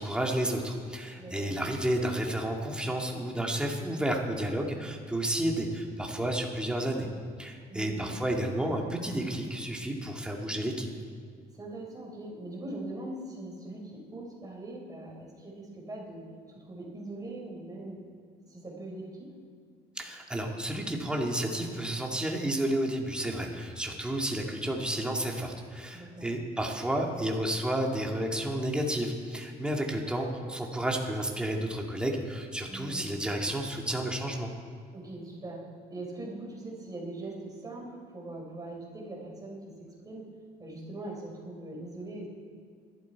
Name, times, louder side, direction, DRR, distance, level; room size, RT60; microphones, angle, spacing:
voice 1, 0.0-7.1 7.4-10.9 20.0-34.5, right 1 dB, 5° right, 0 dB, 2.1 m, -31 dB
voice 2, 1.2-1.6 7.7-8.1 11.5-18.0 18.5-19.3 25.9-26.3 32.7-33.1 34.9-40.3 40.6-42.3, right 2 dB, 20° right, -2 dB, 4.5 m, -41 dB
20.5 x 12.0 x 4.7 m, 2.1 s
cardioid pair, 110°, 17 cm